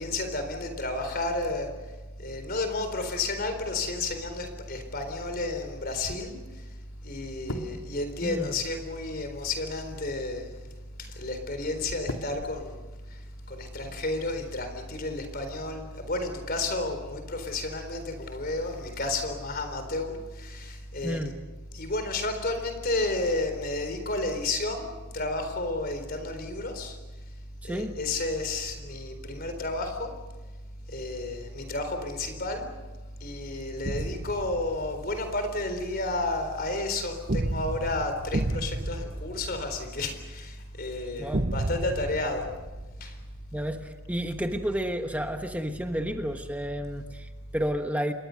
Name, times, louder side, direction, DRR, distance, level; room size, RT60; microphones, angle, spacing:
voice 1, 0.0-1.7 2.2-6.4 7.0-10.5 11.0-12.8 13.5-21.2 21.7-27.0 27.6-30.1 30.9-32.7 33.2-42.4 43.0-43.1, left 2 dB, 40° left, 7 dB, 4.0 m, -31 dB
sound 1, 3.8-14.6, left 1 dB, 80° left, 2.4 m, -46 dB
voice 2, 21.0-21.3 27.6-28.0 41.2-41.5 43.5-48.1, equal, 5° right, 5 dB, 1.3 m, -31 dB
sound 2, 33.8-35.2 37.3-40.2 41.3-43.5, right 1 dB, 40° right, 0.9 m, -32 dB
28.5 x 23.0 x 6.5 m, 1.2 s
head